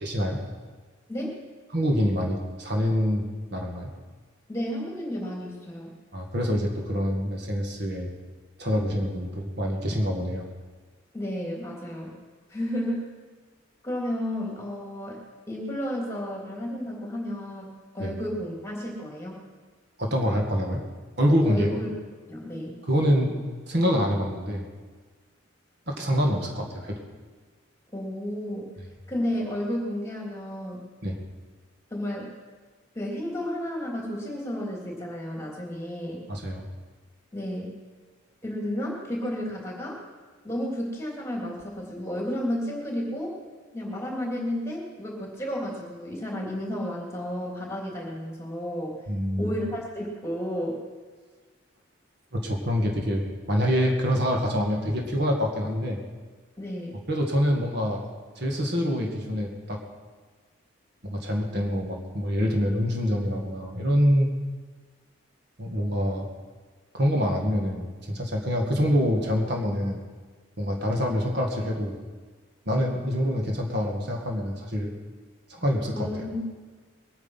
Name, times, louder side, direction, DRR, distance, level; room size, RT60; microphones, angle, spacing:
voice 1, 0.0-0.4 1.7-3.9 6.1-8.1 8.6-10.5 18.0-18.1 20.0-20.8 21.2-21.7 22.9-23.3 23.7-24.6 25.9-27.0 31.0-31.2 36.3-36.7 49.1-49.5 52.3-56.0 57.1-58.1 58.4-59.8 61.0-64.3 65.6-66.3 66.9-70.0 70.6-72.0 72.7-74.9 75.5-76.1, equal, 50° right, 1 dB, 2.0 m, -26 dB
voice 2, 1.1-1.4 4.5-5.9 11.1-12.1 12.5-13.0 13.8-15.2 15.5-19.4 21.5-21.9 22.3-22.8 27.9-28.7 29.1-30.9 31.9-32.3 32.9-36.2 37.3-37.8 38.4-40.0 40.4-43.3 43.7-48.9 49.4-50.7 56.6-57.0 75.9-76.4, equal, 15° left, -2 dB, 3.0 m, -32 dB
21.5 x 9.5 x 5.8 m, 1.4 s
head